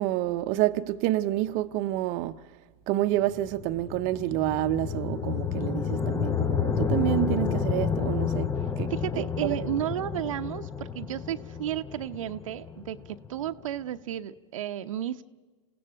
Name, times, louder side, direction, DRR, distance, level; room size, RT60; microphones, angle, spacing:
voice 1, 0.0-2.4 2.9-9.7, right 15 dB, 45° right, 0.9 m, -28 dB
sound 1, 3.2-13.5, left 7 dB, 15° left, 0.8 m, -30 dB
voice 2, 8.9-15.2, right 11 dB, 75° right, 0.9 m, -33 dB
27.5 x 16.5 x 8.9 m
hypercardioid pair, 110°, 17 cm